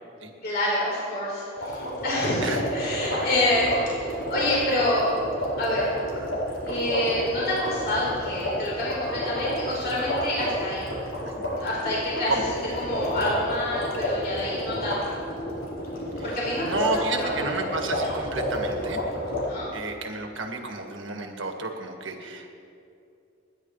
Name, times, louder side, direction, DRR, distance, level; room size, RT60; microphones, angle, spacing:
voice 1, 0.4-5.1 5.6-5.9 6.6-10.8 11.5-12.3 12.8-15.3 16.3-17.6 18.0-18.1 19.4-19.7, left 1 dB, 55° left, -6 dB, 4.3 m, -27 dB
sound 1, 1.6-19.4, equal, 80° left, 4.4 m, -30 dB
voice 2, 16.6-19.0 19.7-22.5, right 3 dB, 70° right, 3 dB, 1.7 m, -31 dB
27.5 x 11.0 x 3.3 m, 2.6 s
head